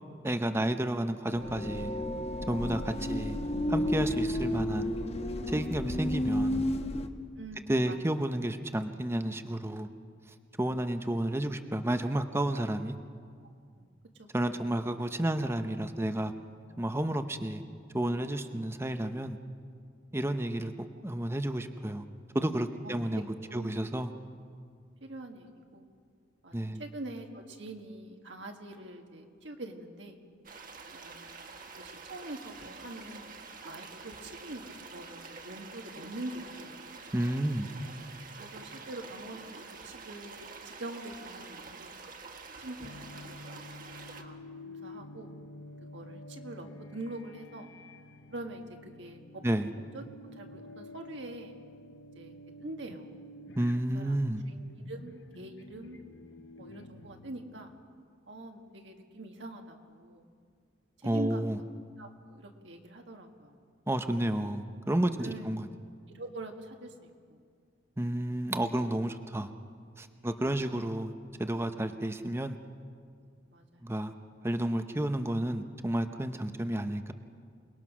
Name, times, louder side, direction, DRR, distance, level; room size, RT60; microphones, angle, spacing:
voice 1, 0.2-1.9 2.5-3.4 3.7-4.9 5.5-6.6 7.7-9.9 10.6-13.0 14.3-16.3 16.8-17.6 17.9-19.4 20.1-22.0 22.3-23.3 23.5-24.1 26.5-26.8 37.1-37.7 49.4-49.7 53.6-54.4 61.0-61.6 63.9-65.6 68.0-69.5 70.0-71.1 71.4-72.6 73.8-74.1 74.4-77.1, right 1 dB, 15° right, 8 dB, 0.8 m, -31 dB
sound 1, 1.3-7.1, left 1 dB, 35° left, 1.1 m, -32 dB
voice 2, 7.4-8.2 13.8-13.9 14.2-14.7 22.8-23.2 23.5-23.8 24.1-24.2 25.0-25.9 26.4-30.2 30.9-31.4 31.8-33.3 33.7-37.0 38.4-39.5 39.8-40.4 40.6-42.0 42.6-43.8 44.1-45.3 45.9-46.7 46.9-47.7 48.3-49.2 49.9-51.5 52.1-53.1 53.9-54.2 54.5-56.0 56.6-57.7 58.3-60.3 61.0-61.5 62.0-63.6 65.2-65.5 66.1-66.9 67.3-67.4 70.2-70.9 73.5-73.9, right 2 dB, 70° right, 3 dB, 1.9 m, -44 dB
sound 2, 30.4-44.2, right 4 dB, 45° right, 1.6 m, -47 dB
sound 3, 42.8-57.9, left 1 dB, 75° left, 1.1 m, -50 dB
28.0 x 20.0 x 6.2 m, 2.1 s
head